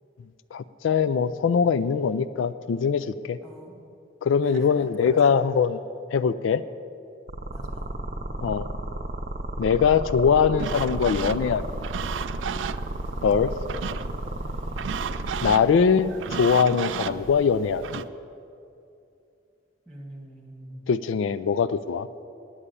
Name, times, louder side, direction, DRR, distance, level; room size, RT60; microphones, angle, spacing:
voice 1, 0.5-3.4 4.2-5.8 6.1-6.6 8.4-8.7 9.6-11.6 13.2-13.5 15.4-17.8 20.9-22.3, left 6 dB, 80° left, 15 dB, 0.3 m, -22 dB
voice 2, 3.4-3.8 4.4-5.3 7.5-7.9 19.9-20.9, right 1 dB, 5° left, -3 dB, 1.9 m, -44 dB
sound 1, 7.3-15.5, right 1 dB, 50° right, 0.8 m, -33 dB
sound 2, 10.6-18.1, right 7 dB, 80° right, 0.4 m, -34 dB
9.7 x 8.8 x 8.3 m, 2.6 s
head